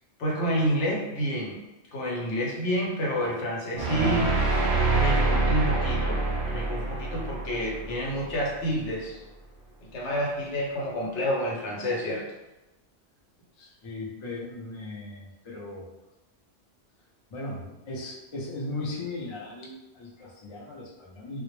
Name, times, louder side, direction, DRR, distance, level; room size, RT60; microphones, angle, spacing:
voice 1, 0.2-1.6 1.9-6.2 6.5-9.2 9.8-12.2, equal, 80° left, -3 dB, 1.0 m, -29 dB
sound 1, 3.7-8.8, right 3 dB, 65° right, 0.3 m, -26 dB
voice 2, 13.6-15.9 17.3-21.4, left 2 dB, 50° left, -3 dB, 0.3 m, -37 dB
2.1 x 2.0 x 3.0 m, 1.0 s
omnidirectional pair, 1.2 m